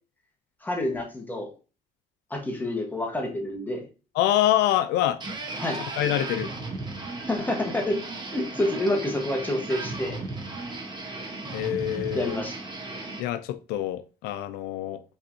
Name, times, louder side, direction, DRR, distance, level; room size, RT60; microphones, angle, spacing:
voice 1, 0.6-1.5 2.3-3.8 5.6-5.8 7.3-8.0 8.3-10.2 12.1-12.6, left 1 dB, 10° left, 1.3 m, -28 dB
voice 2, 4.1-5.2 6.0-6.5 11.5-12.4 13.2-15.0, left 12 dB, 90° left, 0.4 m, -25 dB
sound 1, 5.2-13.2, right 2 dB, 25° right, 1.1 m, -35 dB
5.5 x 3.4 x 2.7 m
cardioid pair, 110°, 17 cm